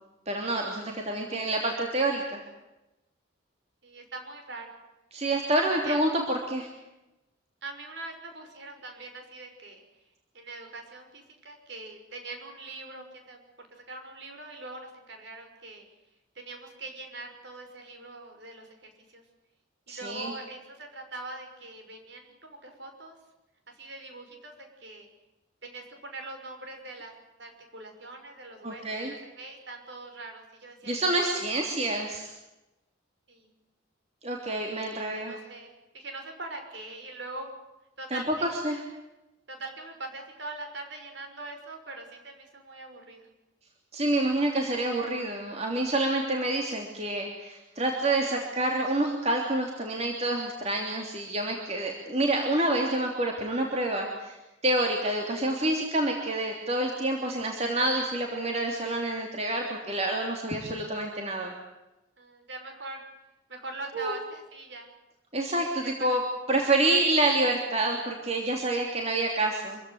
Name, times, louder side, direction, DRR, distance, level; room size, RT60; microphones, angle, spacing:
voice 1, 0.3-2.4 5.1-6.7 19.9-20.3 28.6-29.1 30.9-32.3 34.2-35.4 38.1-38.8 43.9-54.4 54.6-61.5 63.9-64.2 65.3-66.2 66.5-69.8, right 2 dB, 30° right, 1 dB, 3.2 m, -28 dB
voice 2, 3.8-4.8 5.8-6.0 7.6-9.8 10.3-15.8 16.3-19.2 19.9-23.2 23.7-25.1 25.6-27.1 27.4-31.1 33.3-33.5 34.9-37.5 38.0-38.5 39.5-43.3 62.2-63.0 63.5-64.9 65.8-66.2 66.6-66.8, right 2 dB, 55° right, 4 dB, 6.0 m, -42 dB
25.5 x 16.0 x 9.4 m, 0.97 s
head